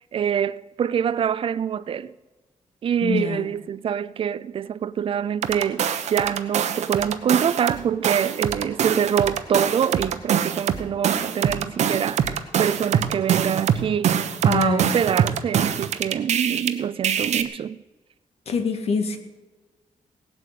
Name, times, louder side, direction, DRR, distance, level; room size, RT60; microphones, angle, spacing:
voice 1, 0.0-2.1 2.8-17.8, right 8 dB, 50° right, 0.4 m, -25 dB
voice 2, 3.0-3.4 14.4-15.0 18.5-19.2, left 5 dB, 60° left, 1.7 m, -25 dB
sound 1, 5.4-7.8 8.0-16.7 17.0-17.4, right 8 dB, 75° right, 1.0 m, -23 dB
17.5 x 8.5 x 8.4 m
wide cardioid pair, 170°, 12 cm